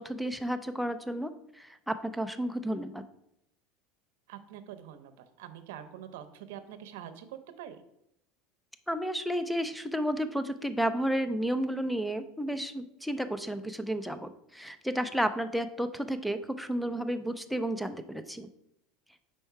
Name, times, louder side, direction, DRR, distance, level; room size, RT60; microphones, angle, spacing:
voice 1, 0.0-3.0 8.9-18.5, equal, ahead, 11 dB, 0.3 m, -32 dB
voice 2, 4.3-7.8, right 10 dB, 80° right, 10 dB, 0.6 m, -45 dB
5.5 x 4.4 x 4.6 m, 0.80 s
cardioid pair, 170°, 0 cm